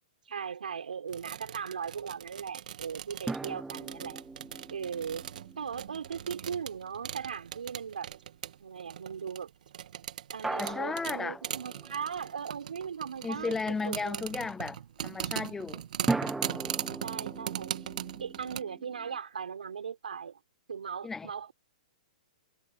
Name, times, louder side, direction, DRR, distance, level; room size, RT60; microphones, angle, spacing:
voice 1, 0.3-4.2 4.7-5.3 5.6-8.1 8.6-9.5 10.3-14.3 17.0-17.8 18.2-20.4 20.7-21.5, right 7 dB, 85° right, 5.4 m, -38 dB
sound 1, 1.1-18.6, right 10 dB, 70° right, 1.7 m, -40 dB
sound 2, 3.3-6.6 10.4-12.4 16.1-19.2, right 3 dB, 5° right, 1.1 m, -38 dB
voice 2, 10.6-11.4 13.2-15.8 21.0-21.3, left 4 dB, 10° left, 0.6 m, -34 dB
hypercardioid pair, 140°, 4 cm